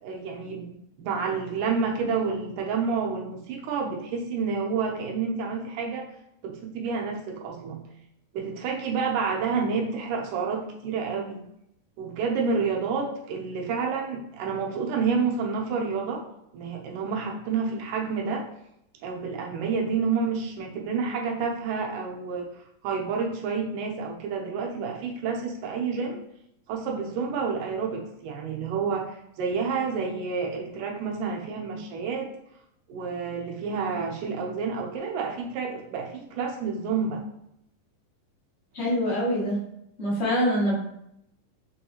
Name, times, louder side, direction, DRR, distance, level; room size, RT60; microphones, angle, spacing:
voice 1, 0.0-6.0 6.4-7.8 8.3-11.4 12.0-16.2 16.5-18.5 19.0-22.5 22.8-26.2 26.7-32.3 32.9-37.2, right 5 dB, 75° right, 0 dB, 2.1 m, -29 dB
voice 2, 38.7-39.6 40.0-40.7, equal, 70° left, -8 dB, 0.6 m, -24 dB
5.4 x 3.2 x 2.8 m, 0.77 s
omnidirectional pair, 4.1 m